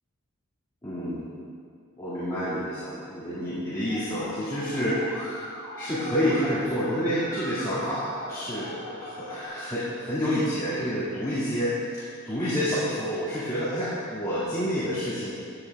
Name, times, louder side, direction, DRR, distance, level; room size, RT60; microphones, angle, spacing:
voice 1, 0.8-1.3 2.0-5.4 5.8-15.3, equal, 15° left, -12 dB, 2.5 m, -28 dB
Musical instrument, 3.9-9.4, equal, 65° right, 2.6 m, -40 dB
15.0 x 10.5 x 3.7 m, 2.3 s
head